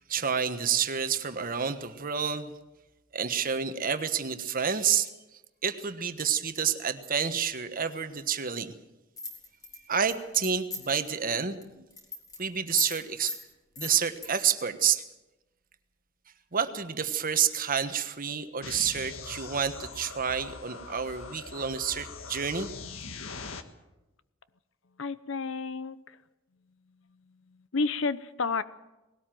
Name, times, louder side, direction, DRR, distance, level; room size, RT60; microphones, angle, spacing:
voice 1, 0.1-2.5 3.1-5.1 5.6-8.7 9.9-11.8 12.4-13.3 13.8-15.0 16.5-22.7, right 7 dB, 45° right, 9 dB, 1.3 m, -29 dB
sound 1, 9.2-11.0 11.4-11.6 11.9-12.4 12.8-13.0 13.3-13.4 13.8-14.3, left 4 dB, 20° left, 4.0 m, -36 dB
sound 2, 18.6-23.6, left 4 dB, 80° left, 1.5 m, -42 dB
voice 2, 25.0-26.2 27.5-28.6, left 4 dB, 65° left, 15 dB, 0.9 m, -31 dB
20.0 x 17.5 x 7.7 m, 1.0 s
head